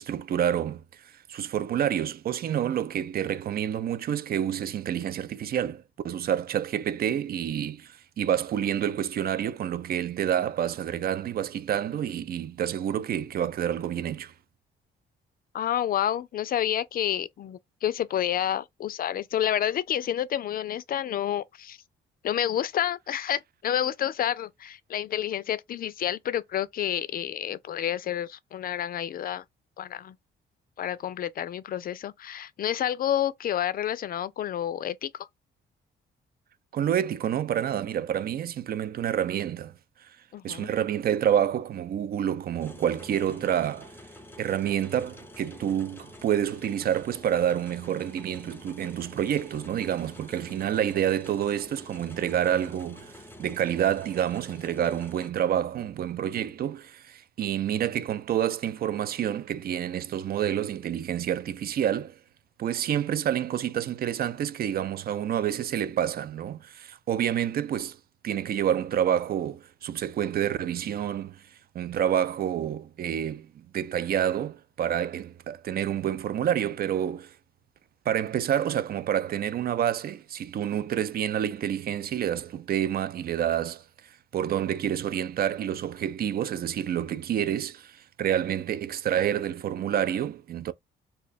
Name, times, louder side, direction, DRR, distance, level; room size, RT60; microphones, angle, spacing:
voice 1, 0.0-14.3 36.7-39.7 40.0-40.1 40.4-43.9 44.4-62.2 62.6-68.0 68.2-71.5 71.7-77.3 78.1-83.8 84.3-90.7, right 10 dB, 50° right, 0.4 m, -28 dB
voice 2, 15.5-21.8 22.2-29.4 29.8-30.2 30.8-35.3 40.3-40.7, left 10 dB, 45° left, 0.4 m, -29 dB
sound 1, 42.6-55.3, left 1 dB, 10° left, 0.6 m, -48 dB
2.7 x 2.2 x 4.0 m
cardioid pair, 90°, 20 cm